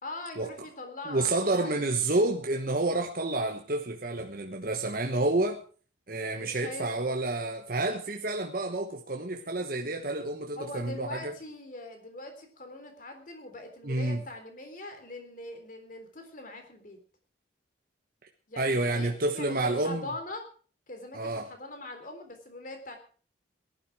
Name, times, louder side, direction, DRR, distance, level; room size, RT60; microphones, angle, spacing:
voice 1, 0.0-1.9 6.3-6.9 10.6-17.0 18.5-20.4 20.9-23.0, left 2 dB, 45° left, 3.7 m, -42 dB
voice 2, 1.1-5.6 6.1-11.3 13.8-14.2 18.6-20.1 21.1-21.5, right 2 dB, 50° right, 1.3 m, -29 dB
18.0 x 12.0 x 4.8 m
head